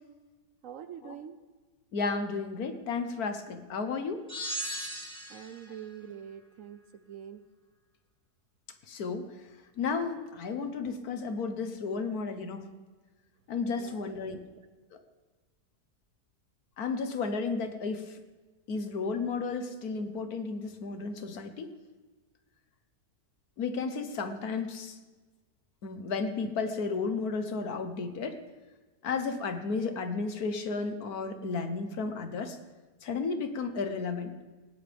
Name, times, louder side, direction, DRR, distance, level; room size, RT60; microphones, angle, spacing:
voice 1, 0.6-1.4 5.3-7.4 13.8-14.1, right 9 dB, 65° right, 11 dB, 0.9 m, -45 dB
voice 2, 1.9-4.2 8.9-9.3 9.8-12.7 13.5-14.4 16.8-18.1 18.7-21.7 23.6-24.9 25.8-28.4 29.0-32.6 33.0-34.3, left 4 dB, 70° left, 8 dB, 1.6 m, -33 dB
sound 1, 4.3-5.7, equal, 5° left, 2.1 m, -37 dB
19.0 x 16.5 x 3.5 m, 1.3 s
omnidirectional pair, 1.7 m